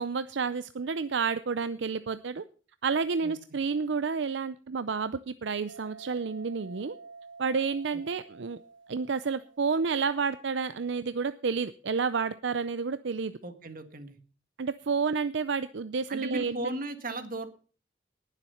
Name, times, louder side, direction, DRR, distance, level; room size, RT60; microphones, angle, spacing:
voice 1, 0.0-2.4 2.8-6.9 7.4-8.6 8.9-13.3 14.6-16.6, right 5 dB, 70° right, 13 dB, 0.5 m, -30 dB
sound 1, 5.7-10.4, right 4 dB, 85° right, 1.0 m, -50 dB
voice 2, 13.4-14.2 16.1-17.5, right 2 dB, 45° right, 9 dB, 1.7 m, -36 dB
19.0 x 7.4 x 5.6 m, 0.40 s
head